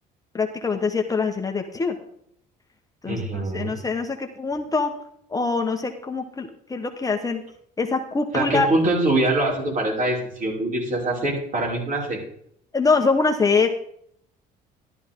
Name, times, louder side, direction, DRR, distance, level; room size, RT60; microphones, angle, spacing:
voice 1, 0.3-2.0 3.0-4.9 5.3-7.4 7.8-8.7 12.7-13.8, left 4 dB, 20° left, 4 dB, 1.2 m, -24 dB
voice 2, 3.1-3.7 8.3-12.2, right 2 dB, 50° right, -3 dB, 5.8 m, -24 dB
12.5 x 12.0 x 3.7 m, 0.69 s
cardioid pair, 110°, 17 cm